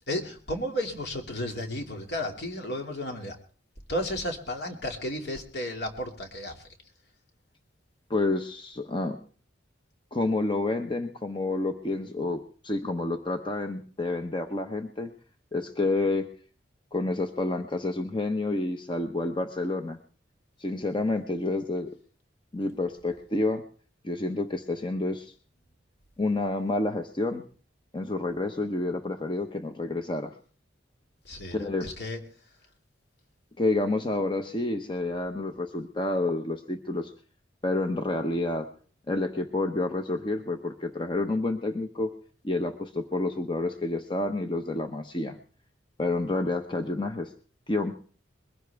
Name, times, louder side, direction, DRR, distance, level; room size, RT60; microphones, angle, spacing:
voice 1, 0.1-3.4 3.9-6.6 31.2-32.2, left 1 dB, 60° left, 3 dB, 2.5 m, -33 dB
voice 2, 8.1-9.2 10.1-15.1 15.5-16.3 16.9-20.0 20.6-21.9 22.5-23.6 24.0-25.3 26.2-27.4 27.9-30.3 31.5-31.9 33.6-37.1 37.6-38.7 39.1-42.1 42.4-45.4 46.0-47.3 47.7-47.9, left 2 dB, 25° left, 6 dB, 0.9 m, -29 dB
22.0 x 15.5 x 3.5 m, 0.43 s
head